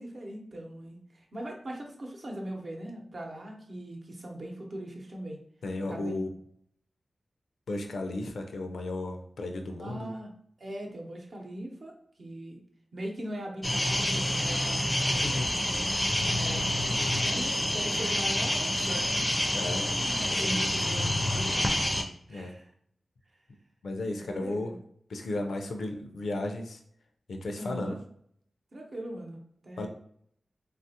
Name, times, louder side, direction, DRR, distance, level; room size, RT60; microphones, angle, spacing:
voice 1, 0.0-5.4 5.9-6.1 9.8-10.3 10.6-11.9 12.2-12.6 12.9-15.9 16.3-19.1 19.6-21.6 22.3-22.7 24.1-24.8 27.6-28.0 28.7-29.9, right 1 dB, 60° right, 1 dB, 0.7 m, -40 dB
voice 2, 5.6-6.3 7.7-10.2 15.2-15.5 16.9-17.2 19.5-20.0 20.3-20.6 22.3-22.5 23.8-24.7 25.1-26.8 27.3-28.0 29.8-29.9, left 2 dB, 90° left, 3 dB, 0.4 m, -34 dB
sound 1, 13.6-22.0, left 1 dB, 15° left, 0.4 m, -28 dB
3.2 x 2.3 x 2.8 m, 0.65 s
wide cardioid pair, 70°, 0 cm